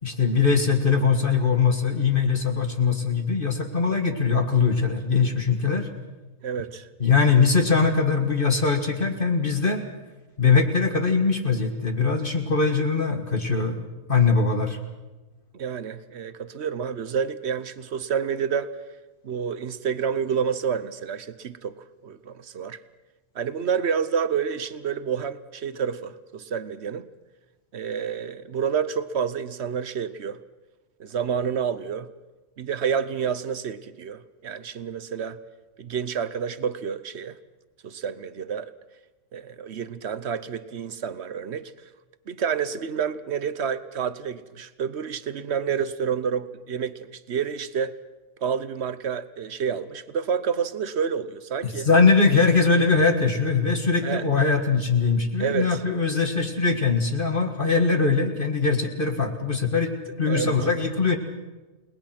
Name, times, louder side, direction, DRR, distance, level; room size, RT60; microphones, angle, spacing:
voice 1, 0.0-5.9 7.0-9.8 10.4-14.8 51.6-61.2, left 4 dB, 35° left, 1.9 m, -21 dB
voice 2, 6.4-6.9 15.5-18.8 19.2-22.8 23.3-27.1 27.7-30.4 31.0-32.1 32.6-35.4 35.8-37.4 37.8-38.7 39.3-41.7 42.3-48.0 48.4-51.9 54.0-54.3 55.4-55.8 60.3-60.5, right 7 dB, 50° right, 1.1 m, -29 dB
30.0 x 19.5 x 6.0 m
omnidirectional pair, 1.5 m